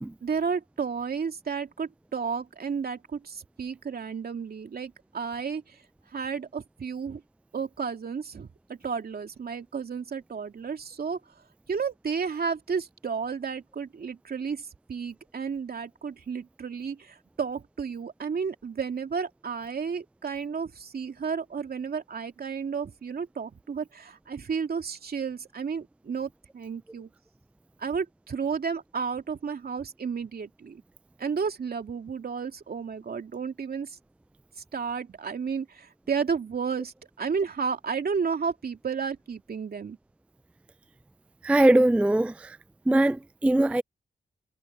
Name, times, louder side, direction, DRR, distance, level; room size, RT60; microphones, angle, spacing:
voice 1, 0.2-5.8 6.1-7.2 7.5-11.2 11.7-27.1 27.8-30.8 31.2-34.0 34.7-40.0, right 6 dB, 60° right, 2.7 m, -32 dB
voice 2, 41.4-42.6 42.9-43.8, right 1 dB, 5° right, 0.3 m, -21 dB
cardioid pair, 50°, 18 cm